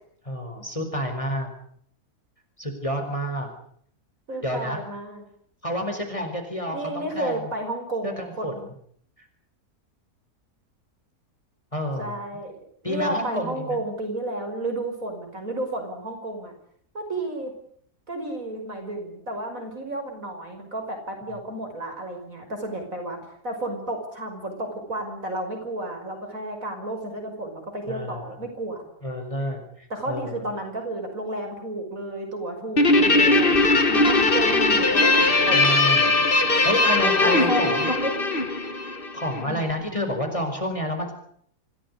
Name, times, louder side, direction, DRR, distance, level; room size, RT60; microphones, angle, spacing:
voice 1, 0.2-1.5 2.6-3.5 4.4-4.8 5.6-7.5 8.0-8.7 9.2-9.3 11.7-12.1 12.8-13.8 27.9-28.4 29.0-30.5 35.5-36.1 36.6-37.9 39.1-41.1, equal, 20° left, 4 dB, 4.8 m, -29 dB
voice 2, 4.3-5.2 6.7-8.6 12.0-16.5 16.9-17.5 18.1-23.2 23.4-28.8 29.9-35.6 37.2-38.1 39.5-39.7, right 1 dB, 55° right, 4 dB, 6.2 m, -32 dB
Guitar, 32.8-39.4, left 2 dB, 35° left, 1.9 m, -20 dB
26.5 x 17.5 x 9.7 m, 0.64 s
omnidirectional pair, 1.7 m